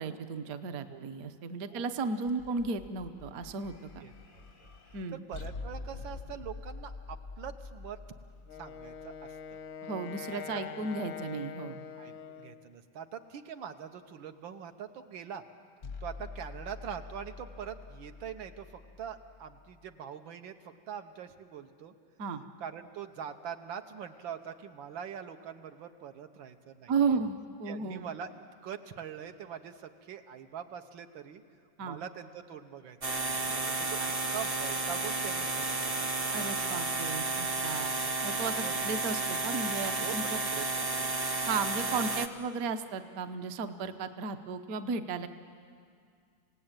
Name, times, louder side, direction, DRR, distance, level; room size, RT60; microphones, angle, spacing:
voice 1, 0.0-3.7 4.9-5.2 9.8-11.8 22.2-22.4 26.9-28.0 31.8-32.0 36.3-37.9 38.2-40.4 41.5-45.3, right 4 dB, 55° right, 9 dB, 1.2 m, -34 dB
sound 1, 2.3-9.6 15.8-19.9, left 4 dB, 45° left, 0.6 m, -46 dB
voice 2, 4.0-4.4 5.1-8.0 8.6-9.6 10.3-10.6 12.0-15.4 16.0-18.7 19.0-21.9 22.6-26.9 27.7-28.3 28.6-31.4 31.8-34.0 34.3-36.3 38.6-38.9 40.0-40.1 40.5-41.1, right 8 dB, 80° right, 7 dB, 1.7 m, -43 dB
Wind instrument woodwind instrument, 8.5-12.7, left 8 dB, 85° left, 1.7 m, -44 dB
sound 2, 33.0-42.3, right 3 dB, 35° right, 0.6 m, -32 dB
27.5 x 17.0 x 8.9 m, 2.2 s
omnidirectional pair, 2.1 m